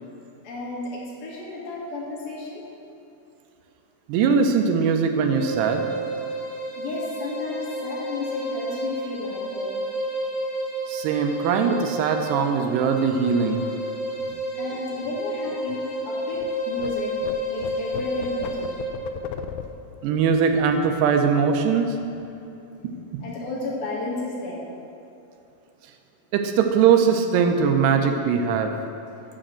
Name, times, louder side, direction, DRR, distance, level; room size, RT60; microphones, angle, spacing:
voice 1, 0.4-2.6 6.8-9.8 14.5-17.1 17.5-18.8 23.2-24.7, left 2 dB, 65° left, -5 dB, 3.5 m, -33 dB
voice 2, 4.1-5.8 10.9-13.6 20.0-22.0 22.8-23.2 26.3-28.7, right 6 dB, 90° right, 5 dB, 2.9 m, -21 dB
sound 1, 5.3-18.9, right 1 dB, 35° left, 3.2 m, -31 dB
sound 2, 13.7-16.5 16.8-21.7 22.0-22.3 22.6-23.1, left 8 dB, 90° left, 2.7 m, -38 dB
7.8 x 7.5 x 7.4 m, 2.8 s
omnidirectional pair, 4.6 m